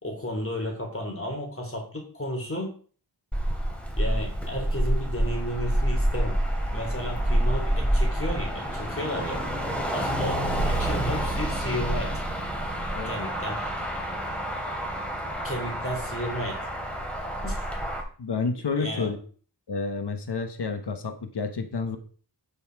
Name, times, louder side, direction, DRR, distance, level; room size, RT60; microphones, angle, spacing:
voice 1, 0.0-2.7 4.0-6.4 6.7-9.4 9.9-12.2 13.0-13.7 15.4-16.6 17.4-17.6 18.8-19.1, equal, 30° left, 1 dB, 3.5 m, -33 dB
Motor vehicle (road), 3.3-18.0, right 1 dB, 5° left, 3.0 m, -28 dB
voice 2, 18.2-19.2 19.7-22.0, left 4 dB, 75° left, 8 dB, 1.2 m, -30 dB
11.5 x 5.6 x 4.7 m, 0.43 s
wide cardioid pair, 60°, 41 cm